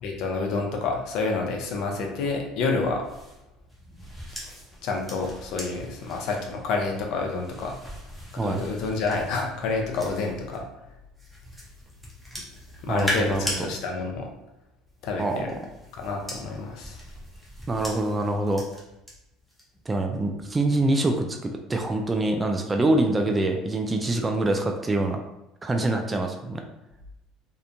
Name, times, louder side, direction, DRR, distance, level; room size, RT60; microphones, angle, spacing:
voice 1, 0.0-3.0 4.8-7.8 8.4-10.6 12.8-14.3 15.0-15.5 16.0-17.0, left 3 dB, 65° left, 1 dB, 0.5 m, -28 dB
sound 1, 3.0-10.6 11.2-13.6 14.9-19.1 19.5-19.8, equal, ahead, 0.8 m, -39 dB
voice 2, 12.9-13.5 15.2-15.4 17.7-18.6 19.9-25.2 25.6-26.7, right 2 dB, 20° right, 4 dB, 0.3 m, -25 dB
2.9 x 2.1 x 2.5 m, 0.89 s
supercardioid pair, 120°, 0 cm